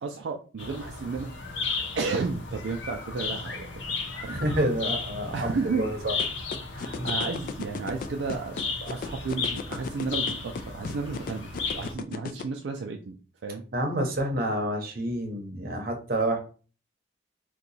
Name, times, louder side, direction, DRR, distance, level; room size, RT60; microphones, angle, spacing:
voice 1, 0.0-3.7 4.1-4.4 5.3-5.9 6.7-13.2 13.4-13.6, right 4 dB, 75° right, 3 dB, 0.4 m, -33 dB
sound 1, 0.6-11.9, left 4 dB, 80° left, 0.7 m, -34 dB
voice 2, 4.3-6.1 7.0-7.1 13.7-16.4, right 1 dB, 55° right, 3 dB, 0.7 m, -28 dB
sound 2, 6.2-12.4, left 5 dB, 50° left, 0.3 m, -34 dB
2.7 x 2.3 x 3.9 m, 0.38 s
head